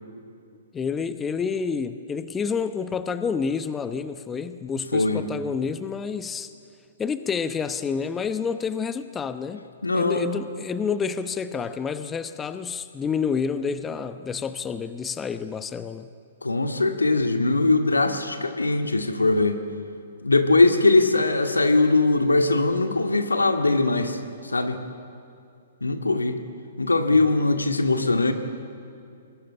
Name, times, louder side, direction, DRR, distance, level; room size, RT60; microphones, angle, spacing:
voice 1, 0.7-6.5 7.0-9.6 9.9-16.1 27.1-27.2, left 6 dB, 15° left, 12 dB, 0.9 m, -29 dB
voice 2, 9.8-10.3 16.4-19.6 20.2-24.8 25.8-26.4 26.8-28.3, left 2 dB, 90° left, 6 dB, 1.9 m, -21 dB
23.5 x 20.5 x 10.0 m, 2.5 s
figure-of-eight pair, 120°, 0 cm